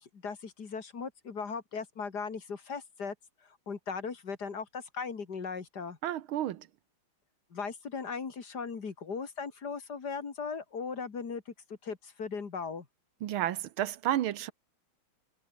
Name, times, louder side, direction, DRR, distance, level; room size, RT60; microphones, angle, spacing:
voice 1, 0.0-3.1 3.4-6.0 7.5-11.5 11.8-12.9, left 5 dB, 50° left, 2.7 m, -38 dB
voice 2, 6.0-6.7 13.2-14.5, right 12 dB, 90° right, 1.8 m, -31 dB
omnidirectional pair, 2.2 m